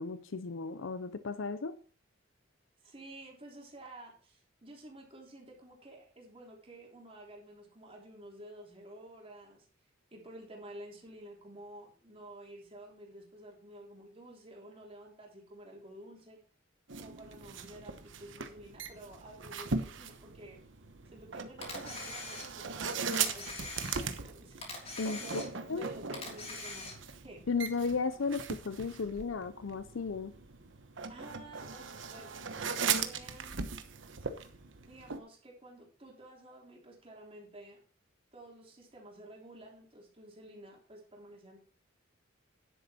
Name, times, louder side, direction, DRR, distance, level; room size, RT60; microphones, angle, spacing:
voice 1, 0.0-1.8 25.0-25.4 25.7-25.9 27.5-30.3, left 4 dB, 75° left, 13 dB, 0.6 m, -34 dB
voice 2, 2.8-9.7 10.1-16.4 17.0-20.6 21.0-27.0 27.2-27.5 31.1-33.7 34.8-37.8 38.3-41.6, right 1 dB, 30° right, -1 dB, 3.4 m, -51 dB
sound 1, 16.9-35.2, right 5 dB, 70° right, 1.1 m, -39 dB
Camera, 21.6-22.8 23.1-24.3 24.6-25.8 26.1-27.2, left 3 dB, 30° left, 3.3 m, -43 dB
10.5 x 8.0 x 4.3 m, 0.40 s
head